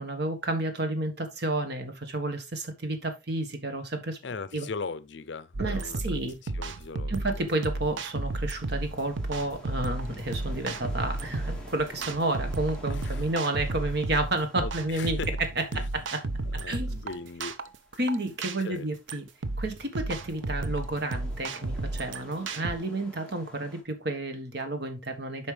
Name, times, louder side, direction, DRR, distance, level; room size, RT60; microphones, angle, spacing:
voice 1, 0.0-4.2 4.5-4.7 5.6-6.3 7.1-15.2 15.9-16.2 16.7-17.0 18.0-19.2 19.6-25.5, right 2 dB, 60° right, 1.4 m, -31 dB
voice 2, 4.2-7.5 12.9-13.3 14.6-15.3 15.7-15.9 16.5-17.6 18.6-18.9, left 4 dB, 65° left, 0.6 m, -39 dB
sound 1, 5.5-22.8, right 2 dB, 75° right, 0.7 m, -33 dB
sound 2, 7.1-23.8, left 1 dB, 5° left, 1.8 m, -52 dB
Wind, 8.0-12.7, left 1 dB, 20° left, 2.2 m, -49 dB
8.6 x 5.2 x 3.3 m
head